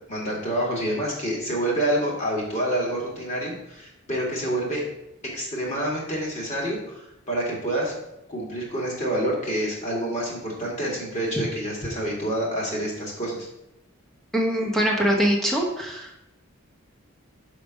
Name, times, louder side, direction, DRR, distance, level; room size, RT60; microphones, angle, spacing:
voice 1, 0.1-4.8 5.3-7.9 8.3-13.5, right 1 dB, 30° left, -3 dB, 2.3 m, -27 dB
voice 2, 14.3-16.1, equal, ahead, -1 dB, 1.2 m, -23 dB
5.8 x 5.1 x 6.3 m, 0.87 s
head